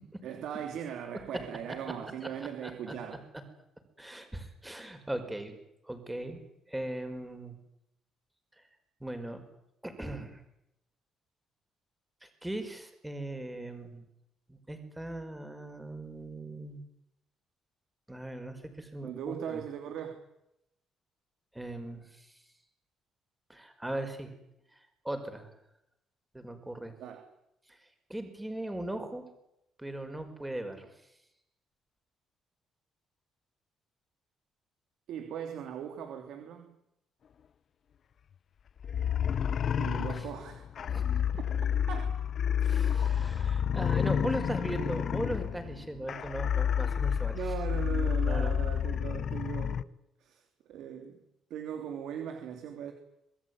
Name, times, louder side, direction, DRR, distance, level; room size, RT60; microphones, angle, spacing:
voice 1, 0.2-3.2 19.0-20.3 27.0-27.2 35.1-36.8 39.8-40.7 41.4-41.5 41.9-42.2 47.3-49.9 50.2-51.2 51.5-52.9, right 8 dB, 75° right, 6 dB, 3.2 m, -39 dB
voice 2, 2.6-3.2 4.0-5.6 5.8-7.6 9.0-9.5 9.8-10.4 12.2-14.1 14.5-16.8 18.1-19.6 21.5-22.3 23.5-24.3 25.0-25.5 26.3-26.9 27.7-27.8 28.1-29.2 29.8-30.9 40.8-41.0 42.6-47.4 48.3-48.6, right 1 dB, 10° right, 7 dB, 5.2 m, -39 dB
sound 1, 38.8-49.8, left 8 dB, 50° left, 1.1 m, -30 dB
26.5 x 21.0 x 9.6 m, 0.83 s
cardioid pair, 120°, 0 cm